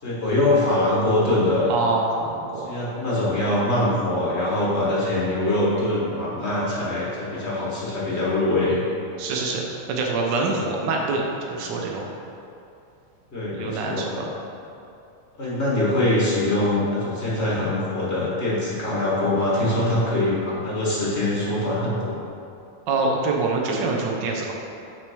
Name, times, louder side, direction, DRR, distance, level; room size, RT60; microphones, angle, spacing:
voice 1, 0.0-1.7 2.5-8.8 13.3-14.2 15.4-22.2, left 1 dB, 35° left, -7 dB, 1.2 m, -23 dB
voice 2, 1.7-2.7 9.2-9.6 9.9-12.1 13.5-14.3 22.9-24.5, right 3 dB, 80° right, 0 dB, 1.0 m, -25 dB
6.2 x 5.1 x 6.2 m, 2.6 s
omnidirectional pair, 3.3 m